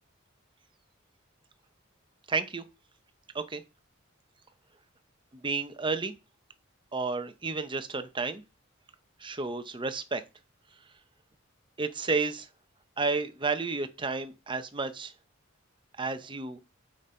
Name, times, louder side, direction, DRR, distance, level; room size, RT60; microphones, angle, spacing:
voice 1, 2.3-2.6 3.3-3.6 5.3-6.1 6.9-8.4 9.2-10.2 11.8-12.5 13.0-15.1 16.0-16.6, right 4 dB, 25° right, 0.8 m, -31 dB
8.0 x 5.3 x 4.4 m
head